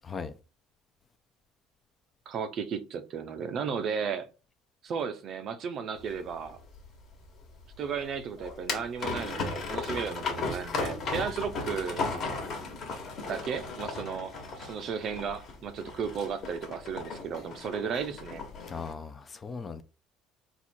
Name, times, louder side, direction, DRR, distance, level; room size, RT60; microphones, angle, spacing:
voice 1, 2.3-4.3 4.8-6.6 7.8-12.1 13.3-18.4, right 6 dB, 40° right, 0.5 m, -34 dB
sound 1, 6.0-18.9, left 4 dB, 40° left, 1.2 m, -36 dB
voice 2, 18.7-19.8, left 5 dB, 25° left, 0.4 m, -38 dB
4.2 x 2.3 x 4.3 m
cardioid pair, 145°, 0 cm